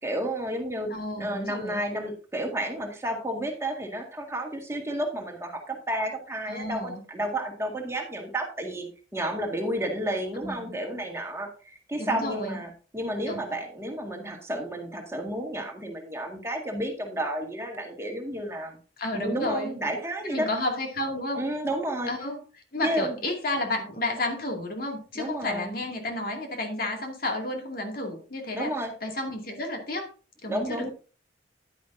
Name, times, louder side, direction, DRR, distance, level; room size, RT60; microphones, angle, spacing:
voice 1, 0.0-0.9 1.2-8.9 9.1-18.8 19.1-20.5 21.3-22.1 22.8-23.2 25.2-25.7 28.5-28.9 30.5-30.9, right 1 dB, 15° right, 2 dB, 1.9 m, -31 dB
voice 2, 0.9-1.8 6.5-7.0 10.4-10.8 12.0-12.6 13.3-13.5 19.0-19.7 20.2-21.4 22.1-22.4 22.7-28.7 29.0-30.1 30.4-30.9, left 1 dB, 55° left, 2 dB, 2.4 m, -31 dB
10.5 x 10.0 x 2.7 m, 0.37 s
head